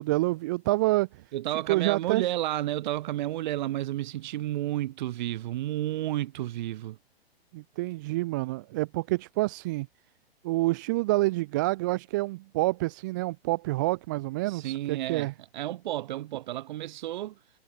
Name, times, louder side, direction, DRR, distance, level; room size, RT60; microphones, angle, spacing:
voice 1, 0.0-1.2 1.7-2.2 7.5-9.9 10.4-15.3, right 20 dB, 20° right, 0.4 m, -27 dB
voice 2, 1.3-7.0 14.5-17.4, right 14 dB, 45° right, 7.4 m, -31 dB
figure-of-eight pair, 120°, 31 cm